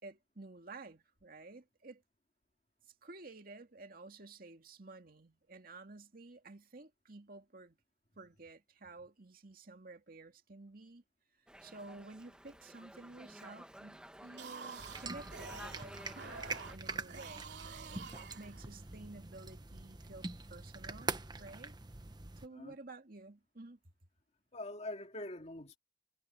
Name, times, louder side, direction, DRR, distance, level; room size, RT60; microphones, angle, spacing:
voice 1, 0.0-2.0 3.0-7.8 8.2-11.0 11.6-21.8 22.4-23.8, right 2 dB, 55° right, 2.2 m, -52 dB
Dog, 11.5-16.8, right 1 dB, 5° right, 1.7 m, -53 dB
sound 1, 14.2-19.0, right 5 dB, 80° right, 3.1 m, -49 dB
sound 2, 14.8-22.5, right 3 dB, 25° right, 1.1 m, -44 dB
voice 2, 24.5-25.8, left 1 dB, 40° left, 2.4 m, -44 dB
head